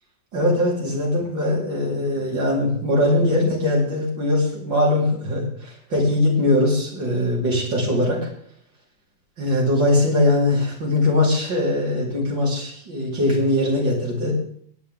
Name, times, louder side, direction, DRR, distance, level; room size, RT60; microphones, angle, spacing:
voice 1, 0.3-8.3 9.4-14.4, left 1 dB, 65° right, -4 dB, 4.8 m, -21 dB
17.0 x 10.0 x 3.8 m, 0.62 s
omnidirectional pair, 2.2 m